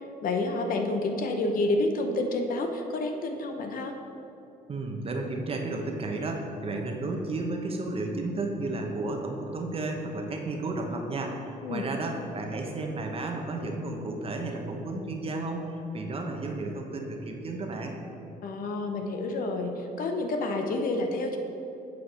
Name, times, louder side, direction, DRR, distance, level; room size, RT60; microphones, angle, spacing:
voice 1, 0.2-3.9 11.6-11.9 18.4-21.4, left 2 dB, 55° left, 4 dB, 0.8 m, -29 dB
voice 2, 4.7-18.0, right 2 dB, 35° right, 2 dB, 1.0 m, -33 dB
8.3 x 4.8 x 5.1 m, 2.8 s
cardioid pair, 110°, 17 cm